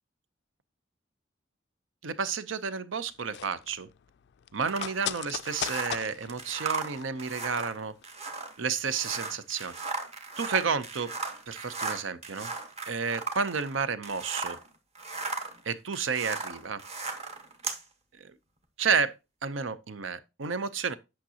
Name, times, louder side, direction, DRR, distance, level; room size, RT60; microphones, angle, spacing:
voice 1, 2.0-3.9 4.5-7.9 8.6-9.7 10.4-11.2 11.5-12.5 12.9-14.6 15.6-16.8 18.2-18.3 18.8-19.1 19.4-21.0, right 5 dB, 80° right, 0.7 m, -31 dB
sound 1, 3.1-7.7 8.0-8.1, left 11 dB, 60° left, 0.3 m, -39 dB
sound 2, 4.7-14.7 14.9-17.8, right 3 dB, 35° right, 1.1 m, -37 dB
8.8 x 5.8 x 2.8 m
head